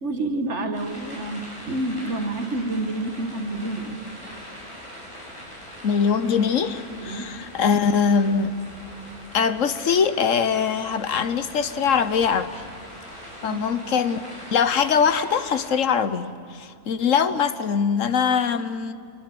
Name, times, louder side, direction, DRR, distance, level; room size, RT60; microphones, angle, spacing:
voice 1, 0.0-4.0 7.0-7.3 13.4-13.6, right 2 dB, 50° right, 7 dB, 1.9 m, -28 dB
sound 1, 0.7-15.7, equal, 20° left, 8.2 m, -42 dB
voice 2, 5.8-8.5 9.3-12.5 13.4-14.2 14.5-18.9, left 6 dB, 60° left, 12 dB, 1.3 m, -22 dB
25.5 x 23.0 x 7.9 m, 2.5 s
omnidirectional pair, 1.6 m